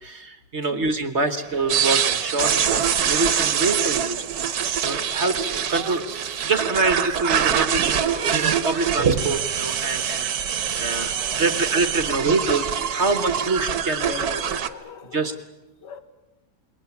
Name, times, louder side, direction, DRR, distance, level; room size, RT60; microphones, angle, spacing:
voice 1, 0.0-4.2 4.8-10.3 10.8-14.4 15.1-15.3, right 3 dB, 45° right, 1.3 m, -25 dB
sound 1, 1.4-14.6, right 8 dB, 90° right, 1.7 m, -41 dB
sound 2, 1.7-14.7, right 8 dB, 65° right, 1.5 m, -24 dB
voice 2, 10.8-11.5 12.0-12.5 14.0-15.3 15.8-16.0, left 7 dB, 85° left, 2.0 m, -40 dB
28.5 x 22.0 x 7.1 m
omnidirectional pair, 1.8 m